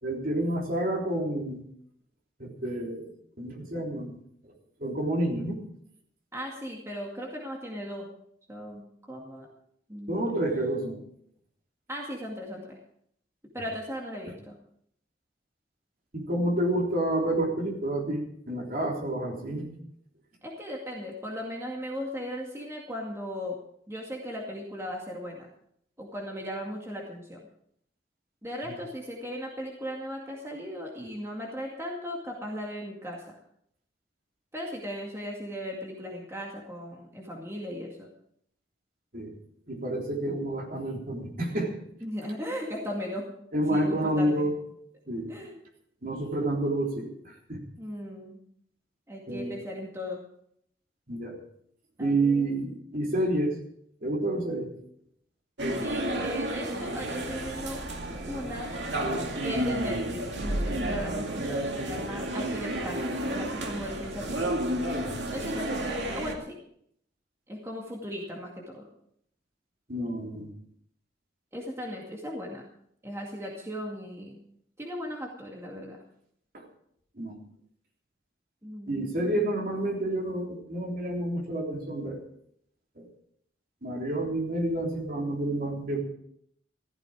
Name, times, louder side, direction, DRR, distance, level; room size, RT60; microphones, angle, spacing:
voice 1, 0.0-1.6 2.4-3.1 3.4-4.2 4.8-5.6 10.1-11.0 16.1-19.8 39.1-39.3 39.7-41.8 43.5-44.6 45.1-45.3 46.0-47.6 49.3-49.5 51.1-51.4 52.0-53.6 54.0-54.7 69.9-70.5 76.5-76.6 77.2-77.4 78.9-82.2 83.0-83.1 83.8-86.0, right 1 dB, 50° right, 0 dB, 3.5 m, -29 dB
voice 2, 6.3-8.1 8.5-8.8 9.1-9.5 9.9-10.2 11.9-12.8 13.5-14.6 20.4-23.6 23.9-25.5 26.0-27.5 28.4-33.3 34.5-38.1 42.0-43.3 43.7-44.5 45.3-45.6 47.8-48.4 49.1-50.2 52.0-52.5 55.7-57.8 58.3-58.7 59.4-64.7 65.3-66.6 67.5-68.9 71.5-72.6 73.0-74.4 74.8-76.0 78.6-79.4, equal, 15° right, -1 dB, 2.1 m, -37 dB
sound 1, 55.6-66.4, right 1 dB, 80° right, 2.3 m, -31 dB
15.0 x 13.5 x 4.9 m, 0.68 s
head